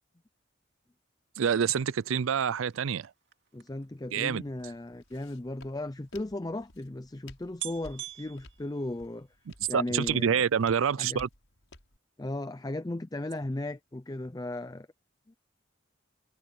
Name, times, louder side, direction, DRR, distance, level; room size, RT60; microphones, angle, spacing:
voice 1, 1.4-3.1 4.1-4.4 9.7-11.3, right 7 dB, 80° right, 0.4 m, -27 dB
sound 1, 1.7-5.3 6.1-6.2 6.4-6.5 7.1-7.2 7.6-9.5 9.9-10.3 10.6-10.7, right 13 dB, 55° right, 2.6 m, -46 dB
voice 2, 3.5-9.3 9.7-10.4 11.0-11.2 12.2-14.9 15.3-15.4, left 1 dB, 20° left, 0.5 m, -36 dB
Walk footsteps, 3.9-12.0, left 2 dB, 85° left, 6.1 m, -55 dB
head